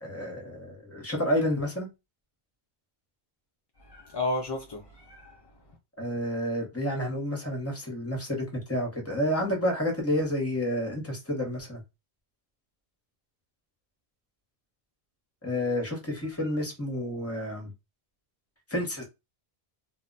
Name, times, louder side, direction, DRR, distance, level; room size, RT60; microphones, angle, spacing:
voice 1, 0.0-1.9 6.0-11.8 15.4-17.7 18.7-19.0, equal, 15° left, 0.7 m, -30 dB
voice 2, 3.8-5.5 16.1-16.5, left 2 dB, 45° left, 0.3 m, -34 dB
2.1 x 2.1 x 3.7 m
omnidirectional pair, 1.1 m